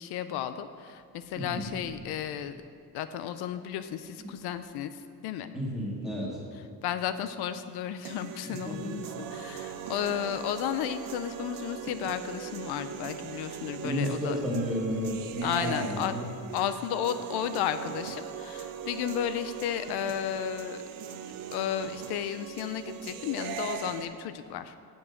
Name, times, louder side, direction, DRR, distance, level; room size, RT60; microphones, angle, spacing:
voice 1, 0.0-2.6 2.9-4.9 5.2-5.5 6.8-9.1 9.3-14.4 15.4-16.2 16.5-20.8 21.5-24.7, left 10 dB, 80° left, 11 dB, 0.5 m, -33 dB
voice 2, 1.4-1.7 4.2-4.3 5.5-6.4 8.5-9.0 13.8-16.3, equal, ahead, -6 dB, 1.7 m, -32 dB
sound 1, 8.0-24.0, right 8 dB, 60° right, 0.6 m, -40 dB
7.2 x 6.1 x 7.7 m, 2.2 s
cardioid pair, 180°, 39 cm